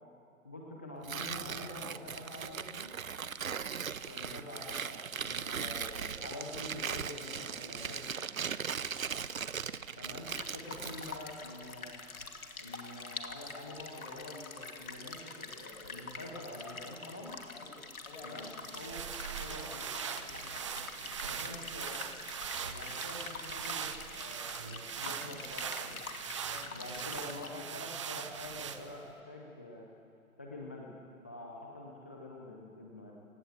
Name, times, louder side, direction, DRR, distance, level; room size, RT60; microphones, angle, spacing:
voice 1, 0.4-2.9 4.0-8.3 10.0-12.0 12.6-17.4 18.2-19.0 19.3-19.9 21.2-22.0 22.6-26.0 26.7-29.9 30.4-30.9 31.2-33.1, left 2 dB, 10° left, -1 dB, 0.5 m, -46 dB
Tearing, 1.0-11.2, right 7 dB, 70° right, 1.0 m, -39 dB
sound 1, 10.3-27.5, left 4 dB, 75° left, 2.8 m, -46 dB
voice 2, 17.5-18.8 20.2-21.7 26.5-26.7 30.6-30.7, left 3 dB, 45° left, 1 dB, 7.0 m, -54 dB
sound 2, 18.4-29.1, right 8 dB, 20° right, 0.8 m, -41 dB
28.0 x 17.5 x 8.6 m, 2.9 s
figure-of-eight pair, 145°, 43 cm